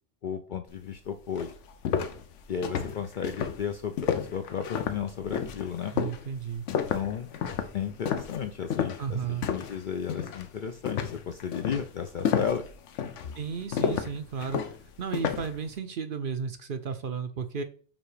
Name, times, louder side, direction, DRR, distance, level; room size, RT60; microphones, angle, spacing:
voice 1, 0.2-1.5 2.5-5.9 6.7-7.3 7.7-12.6, left 7 dB, 60° left, 7 dB, 0.5 m, -34 dB
sound 1, 0.9-1.0 1.4-9.8 10.1-10.5 10.9-15.6, left 8 dB, 75° left, 1.0 m, -31 dB
voice 2, 5.9-6.7 9.0-9.5 13.4-14.6 15.0-17.6, right 6 dB, 55° right, 8 dB, 0.7 m, -33 dB
7.2 x 2.9 x 4.8 m, 0.42 s
omnidirectional pair, 1.2 m